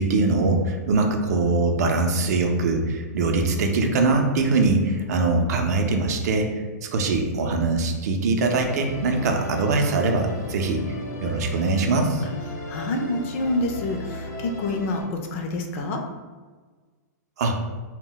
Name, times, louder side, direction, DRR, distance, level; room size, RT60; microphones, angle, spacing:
voice 1, 0.0-6.6 6.9-11.0 11.2-12.2 17.4-17.6, right 3 dB, 65° right, 3 dB, 0.5 m, -22 dB
Musical instrument, 8.6-15.0, left 1 dB, 75° left, 0.8 m, -36 dB
voice 2, 12.7-16.0, left 2 dB, 45° left, 3 dB, 0.4 m, -27 dB
2.1 x 2.0 x 3.8 m, 1.4 s
hypercardioid pair, 140°, 10 cm